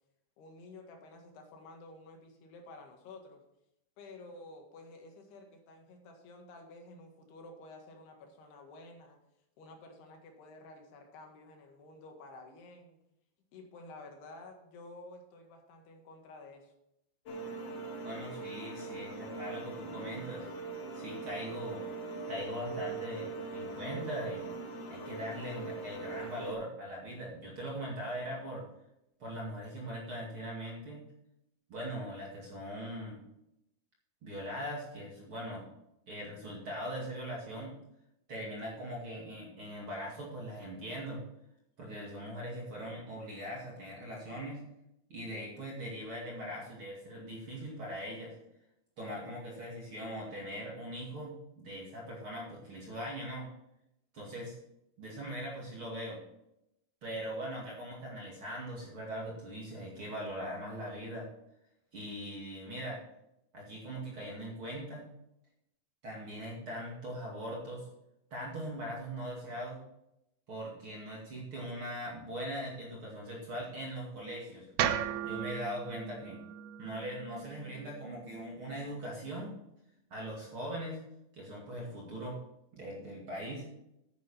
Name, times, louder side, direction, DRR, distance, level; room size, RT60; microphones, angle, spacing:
voice 1, 0.4-3.4 4.0-9.2 9.6-13.0 13.5-16.7, left 2 dB, 90° left, 3 dB, 3.8 m, -51 dB
sound 1, 17.3-26.5, right 3 dB, 60° left, 1.6 m, -41 dB
voice 2, 18.0-20.5 20.9-21.8 22.3-24.5 24.9-28.6 29.2-31.0 31.7-33.2 34.2-35.7 36.1-37.8 38.3-41.2 41.8-44.6 45.1-48.4 49.0-53.5 54.1-54.6 55.0-56.2 57.0-61.3 61.9-63.0 63.5-65.1 66.0-67.9 68.3-69.8 70.5-74.7 75.2-76.4 76.8-79.6 80.1-81.0 81.3-82.4 82.7-83.7, equal, 40° right, -4 dB, 2.7 m, -41 dB
sound 2, 74.8-78.9, right 10 dB, 80° right, 1.9 m, -37 dB
10.0 x 9.8 x 4.3 m, 0.83 s
omnidirectional pair, 4.5 m